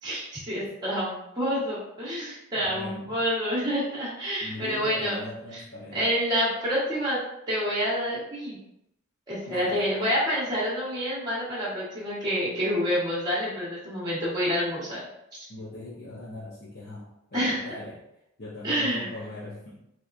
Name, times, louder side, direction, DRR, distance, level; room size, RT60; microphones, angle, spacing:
voice 1, 0.0-5.2 5.9-7.2 7.5-8.6 9.3-15.0 17.3-17.6 18.6-19.1, equal, 20° right, -7 dB, 1.1 m, -28 dB
voice 2, 2.5-3.2 4.4-6.0 9.5-10.0 15.5-18.0 18.4-19.8, left 1 dB, 45° left, -10 dB, 0.9 m, -40 dB
3.5 x 2.9 x 2.5 m, 0.83 s
head